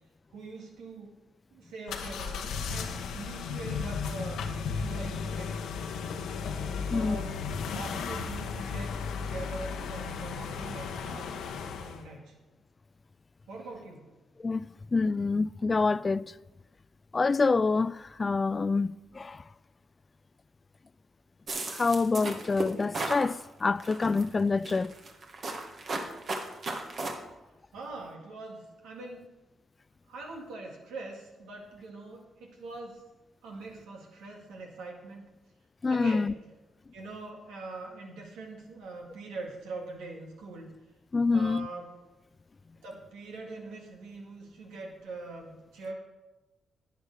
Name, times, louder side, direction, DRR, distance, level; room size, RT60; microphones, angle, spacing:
voice 1, 0.3-1.2 1.5-4.4 4.7-6.2 6.8-7.4 7.7-11.3 11.7-12.4 13.5-14.1 27.7-29.3 30.1-33.0 33.4-35.3 35.9-36.3 36.9-40.7 41.3-42.0 42.8-45.9, right 3 dB, 90° right, 2.0 m, -43 dB
sound 1, 1.9-12.0, left 5 dB, 85° left, 1.0 m, -35 dB
voice 2, 14.4-16.3 17.1-19.5 21.7-24.9 35.8-36.3 41.1-41.7, left 4 dB, 35° left, 0.3 m, -27 dB
sound 2, 21.5-23.3 23.8-24.2 24.6-27.1, right 3 dB, 55° right, 1.6 m, -35 dB
10.5 x 9.4 x 4.8 m
supercardioid pair, 55°, 0 cm